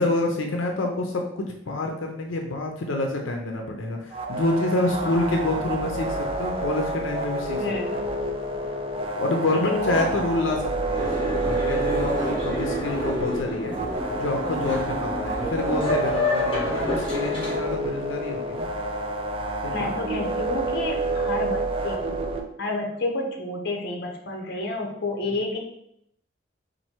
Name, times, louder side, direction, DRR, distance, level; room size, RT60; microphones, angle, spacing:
voice 1, 0.0-7.6 8.0-8.1 9.1-13.8 14.1-18.7 19.6-19.9, left 2 dB, 90° left, 2 dB, 0.6 m, -27 dB
sound 1, 4.1-22.4, right 2 dB, 30° right, 0.4 m, -29 dB
voice 2, 4.9-5.3 7.6-7.9 9.5-10.1 19.7-22.2 22.6-25.6, left 2 dB, 55° left, 1 dB, 0.8 m, -29 dB
Boat Water vehicle, 10.9-17.6, left 2 dB, 25° left, 1.1 m, -29 dB
4.3 x 2.6 x 4.4 m, 0.75 s
head